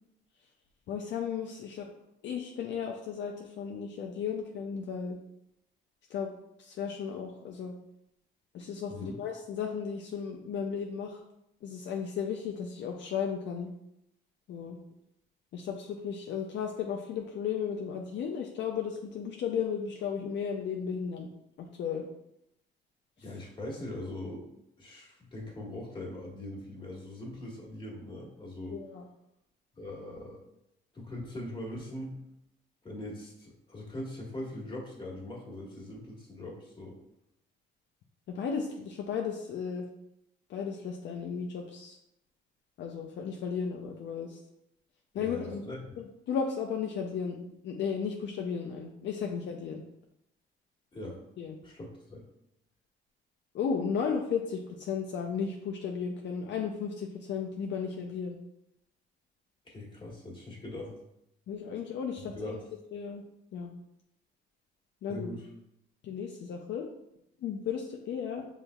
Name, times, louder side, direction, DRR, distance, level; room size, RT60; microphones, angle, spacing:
voice 1, 0.9-1.9 2.2-5.2 6.1-6.3 6.6-7.7 8.5-11.2 11.6-13.7 14.5-14.8 15.5-21.3 21.6-22.1 28.7-29.0 38.3-39.9 40.5-42.0 42.8-44.4 45.1-45.7 46.0-47.4 47.6-49.8 51.4-51.6 53.5-58.4 61.5-62.6 62.9-63.2 63.5-63.7 65.0-65.3 66.0-66.9 67.4-68.4, left 6 dB, 65° left, 1 dB, 0.5 m, -34 dB
voice 2, 23.2-24.5 24.8-28.8 29.7-30.4 30.9-32.1 32.8-37.0 45.2-45.8 50.9-51.2 51.6-52.2 59.6-60.9 62.2-62.6 65.1-65.5, left 1 dB, 25° left, -3 dB, 1.5 m, -41 dB
5.6 x 4.0 x 2.3 m, 0.81 s
cardioid pair, 90°, 20 cm